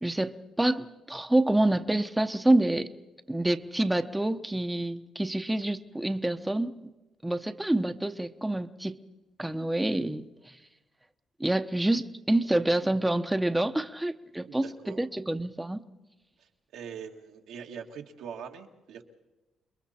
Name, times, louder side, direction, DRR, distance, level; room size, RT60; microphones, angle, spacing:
voice 1, 0.0-2.9 3.3-6.7 7.2-9.0 9.4-10.6 11.4-15.8, right 1 dB, 10° right, 8 dB, 0.8 m, -27 dB
voice 2, 14.5-15.0 16.4-19.0, right 7 dB, 85° right, 2 dB, 2.0 m, -43 dB
29.0 x 21.5 x 4.3 m, 1.1 s
cardioid pair, 90°, 0 cm